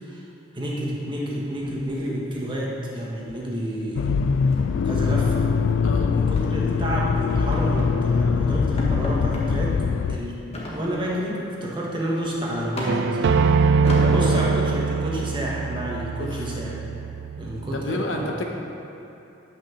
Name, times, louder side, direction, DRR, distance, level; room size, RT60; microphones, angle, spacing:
voice 1, 0.5-4.1 4.8-5.4 6.1-9.8 10.1-10.4 10.7-13.5 14.0-16.7 17.4-18.2, equal, 25° right, -4 dB, 1.4 m, -29 dB
sound 1, 1.6-2.4 2.7-3.0 3.3-3.5 3.8-3.9 4.3-5.8 6.4-6.6 7.1-8.0 8.4-8.5 8.8-9.5 10.5-11.3 11.7-13.3 13.8-14.6, left 1 dB, 35° left, 1.4 m, -35 dB
Accelerating revving vroom, 3.9-10.2, left 5 dB, 70° left, 0.3 m, -22 dB
voice 2, 5.8-6.2 14.2-14.5 16.2-16.5 17.7-18.4, left 1 dB, 85° left, 2 dB, 1.0 m, -30 dB
sound 2, 12.9-17.9, right 5 dB, 60° right, 0.3 m, -23 dB
8.6 x 5.8 x 6.5 m, 2.9 s
head